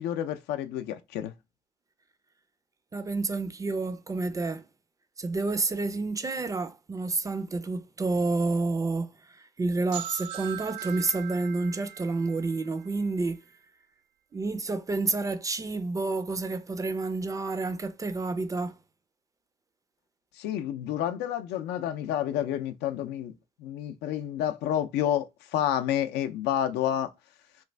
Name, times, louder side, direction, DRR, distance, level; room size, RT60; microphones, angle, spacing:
voice 1, 0.0-1.3 20.4-27.1, left 11 dB, 80° left, 0.4 m, -29 dB
voice 2, 2.9-4.6 5.2-13.4 14.3-18.7, right 3 dB, 20° right, 0.3 m, -29 dB
sound 1, 9.9-13.6, right 11 dB, 85° right, 0.4 m, -41 dB
3.1 x 2.5 x 3.2 m
cardioid pair, 110°, 17 cm